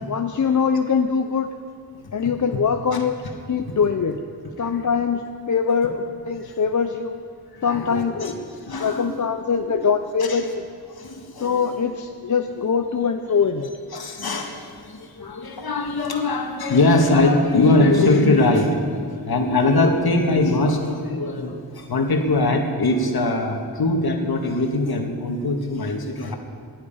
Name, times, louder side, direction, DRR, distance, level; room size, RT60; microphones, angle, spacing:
voice 1, 0.1-1.5 2.1-3.1 3.5-4.1 4.6-5.2 5.5-7.2 7.6-8.3 8.8-10.6 11.4-13.7, left 6 dB, 50° left, 6 dB, 0.6 m, -22 dB
voice 2, 7.5-9.2 10.2-10.5 10.9-11.8 13.9-26.3, left 2 dB, 65° left, 2 dB, 1.9 m, -22 dB
19.0 x 11.5 x 5.6 m, 2.4 s
wide cardioid pair, 145°, 40 cm